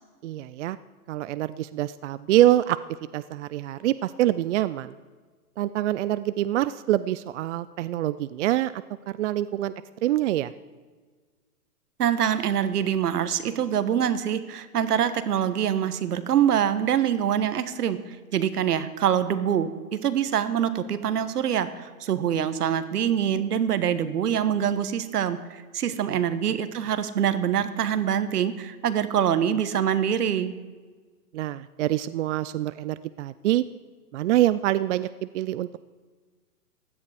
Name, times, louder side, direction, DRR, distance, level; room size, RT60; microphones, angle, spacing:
voice 1, 0.2-0.8 1.1-2.8 3.1-4.9 5.6-9.7 10.0-10.5 26.1-26.2 31.3-33.6 34.1-35.8, right 14 dB, 50° right, 15 dB, 0.5 m, -25 dB
voice 2, 12.0-30.5, right 9 dB, 75° right, 12 dB, 1.2 m, -25 dB
16.0 x 10.5 x 4.9 m, 1.4 s
hypercardioid pair, 125°, 46 cm